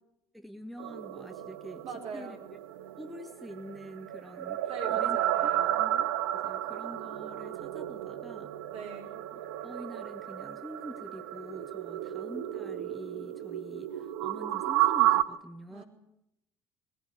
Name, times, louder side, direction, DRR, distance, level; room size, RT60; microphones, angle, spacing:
voice 1, 0.3-1.8 2.1-2.4 3.0-8.5 9.3-15.8, equal, ahead, 8 dB, 1.5 m, -46 dB
sound 1, 0.8-15.2, right 13 dB, 65° right, 0.9 m, -32 dB
voice 2, 1.8-2.4 4.7-5.7 8.6-9.1 12.0-12.1 15.7-15.8, right 5 dB, 50° right, 3 dB, 5.0 m, -42 dB
20.5 x 16.5 x 9.8 m, 0.83 s
figure-of-eight pair, 60°, 13 cm